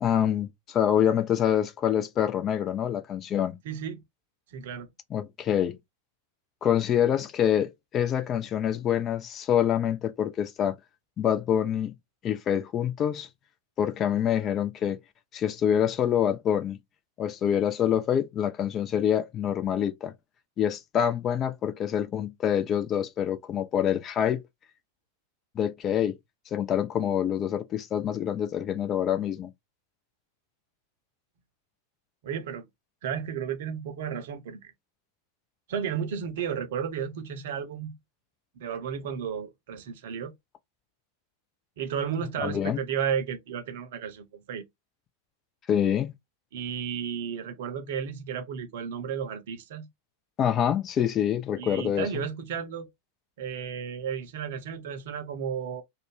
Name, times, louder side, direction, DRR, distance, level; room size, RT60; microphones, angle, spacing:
voice 1, 0.0-3.6 5.1-5.8 6.6-10.8 11.2-11.9 12.2-13.3 13.8-15.0 15.3-16.8 17.2-20.1 20.6-24.4 25.6-26.2 26.5-29.5 42.4-42.8 45.7-46.1 50.4-52.1, left 9 dB, 30° left, 0.4 m, -26 dB
voice 2, 3.6-4.0 4.5-4.9 32.2-32.7 33.0-34.7 35.7-37.9 38.6-40.3 41.8-44.6 46.5-49.9 51.6-52.9 53.4-55.8, right 7 dB, 55° right, 0.6 m, -33 dB
2.5 x 2.1 x 3.3 m
figure-of-eight pair, 90°, 0 cm